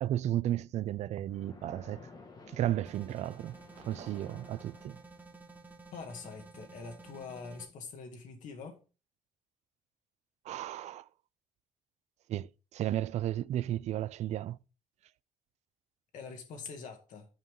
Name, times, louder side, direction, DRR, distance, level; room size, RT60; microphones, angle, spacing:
voice 1, 0.0-2.1 2.5-5.0 10.5-11.0 12.3-14.6, right 12 dB, 55° right, 0.4 m, -34 dB
Splash splatter, 1.3-5.3, left 3 dB, 30° left, 1.5 m, -54 dB
sound 1, 2.8-7.7, right 3 dB, 15° right, 1.5 m, -52 dB
voice 2, 5.9-8.8 16.1-17.3, left 5 dB, 65° left, 2.0 m, -44 dB
11.5 x 5.5 x 3.7 m
cardioid pair, 175°, 14 cm